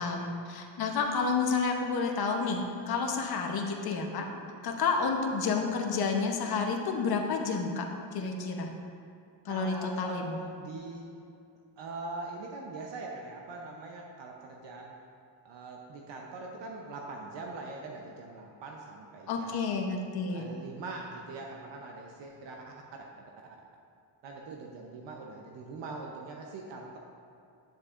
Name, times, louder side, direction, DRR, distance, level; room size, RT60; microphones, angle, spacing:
voice 1, 0.0-4.3 4.6-7.9 8.1-8.7 9.5-10.4 19.3-20.4, left 4 dB, 55° left, 2 dB, 1.0 m, -30 dB
voice 2, 9.5-11.1 11.8-14.9 15.4-19.8 20.3-22.5 23.0-23.1 24.2-27.0, right 3 dB, 70° right, 0 dB, 0.8 m, -42 dB
9.1 x 7.2 x 2.5 m, 2.5 s
cardioid pair, 110°, 45 cm